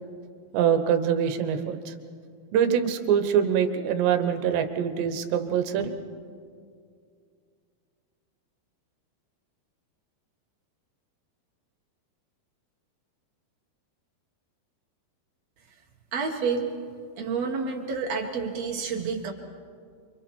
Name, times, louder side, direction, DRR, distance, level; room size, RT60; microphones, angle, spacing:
voice 1, 0.5-1.9 2.5-5.9, right 8 dB, 80° right, 8 dB, 3.2 m, -24 dB
voice 2, 16.1-16.7 17.2-19.3, right 5 dB, 55° right, 1 dB, 1.9 m, -29 dB
29.5 x 25.0 x 4.5 m, 2.2 s
omnidirectional pair, 5.0 m